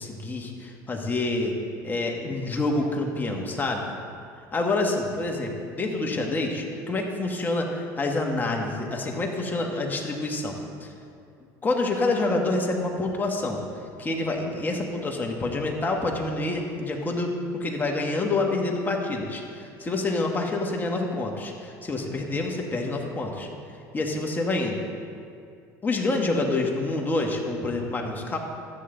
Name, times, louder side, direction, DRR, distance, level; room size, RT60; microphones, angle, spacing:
voice 1, 0.0-1.5 1.8-3.9 4.5-10.9 11.6-13.6 14.0-23.5 23.9-24.7 25.8-28.4, left 2 dB, 20° left, 1 dB, 1.6 m, -27 dB
13.0 x 8.6 x 3.9 m, 2.4 s
supercardioid pair, 100°, 8 cm